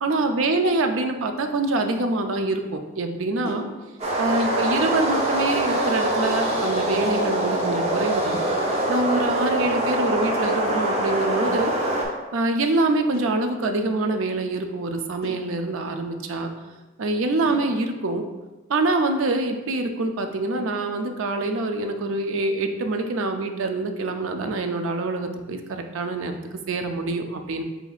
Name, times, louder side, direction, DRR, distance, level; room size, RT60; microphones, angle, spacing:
voice 1, 0.0-3.7 4.2-8.4 8.9-11.7 12.3-16.5 17.0-18.3 18.7-27.6, right 2 dB, 80° right, 6 dB, 0.5 m, -25 dB
sound 1, 3.4-4.8 6.5-7.6 9.0-9.4 10.9-11.4 13.1-14.2 15.2-16.9 17.5-17.7, equal, 45° left, 0.8 m, -42 dB
sound 2, 4.0-12.0, right 1 dB, 30° right, 0.7 m, -24 dB
7.9 x 2.7 x 2.4 m, 1.1 s
head